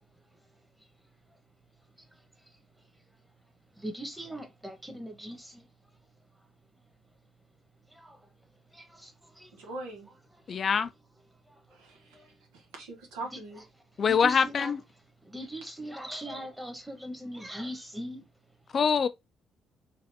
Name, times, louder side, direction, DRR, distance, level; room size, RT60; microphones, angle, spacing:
voice 1, 3.8-5.6 8.0-8.2 8.7-9.5 14.1-14.7 15.2-18.2, right 1 dB, 5° right, 1.2 m, -40 dB
voice 2, 9.5-10.1 11.7-13.6 15.4-15.7, right 2 dB, 90° right, 1.1 m, -43 dB
voice 3, 10.5-10.9 14.0-14.8 18.7-19.1, left 6 dB, 50° left, 0.4 m, -24 dB
4.2 x 2.4 x 2.8 m
supercardioid pair, 60°, 0 cm